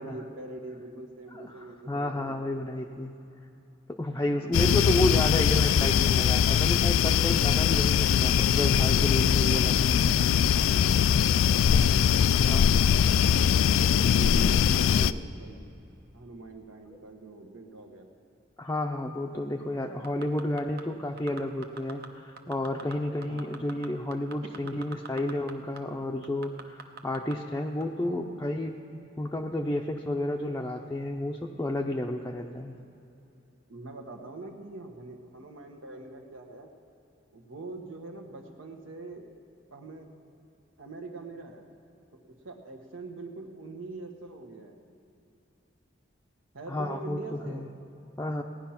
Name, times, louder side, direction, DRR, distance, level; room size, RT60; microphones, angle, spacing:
voice 1, 0.0-2.5 4.2-5.3 11.3-11.9 13.1-15.7 16.1-18.1 23.3-23.6 28.0-28.4 33.7-36.7 37.3-39.3 39.7-40.1 40.8-41.7 42.1-42.2 42.4-44.8 46.5-47.7, right 2 dB, 85° right, 3 dB, 1.4 m, -43 dB
voice 2, 1.9-3.1 3.9-10.3 12.5-12.9 18.6-28.7 29.2-32.8 46.7-47.7 48.2-48.4, left 1 dB, 15° left, 0 dB, 0.5 m, -31 dB
sound 1, 4.5-15.1, left 8 dB, 85° left, 0.3 m, -22 dB
sound 2, 20.0-20.8 21.2-22.1 22.4-22.9 23.2-25.5 25.8-25.9 26.2-27.3 27.8-27.9, right 4 dB, 55° right, 0.9 m, -42 dB
17.5 x 10.0 x 5.8 m, 2.8 s
head